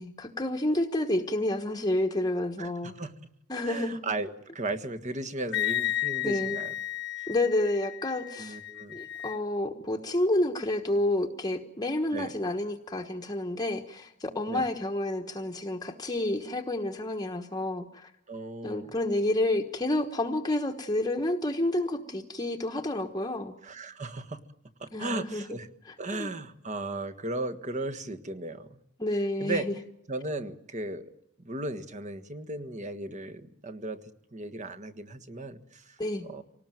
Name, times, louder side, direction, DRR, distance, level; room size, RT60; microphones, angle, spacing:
voice 1, 0.0-2.9 3.5-4.0 6.2-6.6 7.3-8.6 8.9-18.1 18.6-23.6 24.9-25.6 25.9-26.3 29.0-29.7 36.0-36.2, left 1 dB, 20° left, 4 dB, 1.2 m, -29 dB
voice 2, 2.6-3.1 3.6-6.7 8.4-9.0 12.1-12.3 14.5-14.7 18.3-18.9 23.6-24.4 24.8-25.7 26.0-28.8 29.4-29.7 30.1-31.1 31.4-34.0 34.3-36.4, right 2 dB, 35° right, 8 dB, 1.5 m, -36 dB
Wind instrument woodwind instrument, 5.5-9.4, left 13 dB, 50° left, 1.1 m, -33 dB
26.0 x 18.5 x 9.1 m, 0.81 s
head